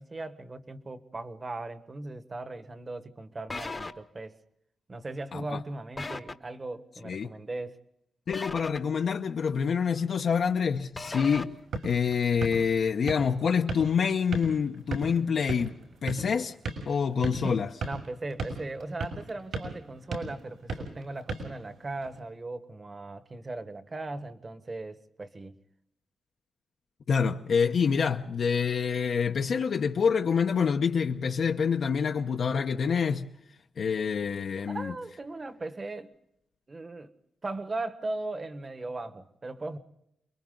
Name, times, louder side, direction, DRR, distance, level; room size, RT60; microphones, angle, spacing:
voice 1, 0.0-4.4 4.9-7.8 17.4-25.6 34.7-36.1 36.7-37.1 37.4-39.8, right 2 dB, 30° right, 1.4 m, -38 dB
sound 1, 3.5-3.9 6.0-6.3 8.3-8.8 10.9-11.4, left 3 dB, 25° left, 1.0 m, -36 dB
voice 2, 8.3-11.5 11.8-15.7 16.0-16.5 16.9-17.7 27.1-33.3 33.8-34.9, left 6 dB, 65° left, 0.9 m, -26 dB
sound 2, 11.4-22.2, right 2 dB, 85° right, 6.1 m, -38 dB
29.5 x 22.5 x 3.9 m
wide cardioid pair, 130°, 0 cm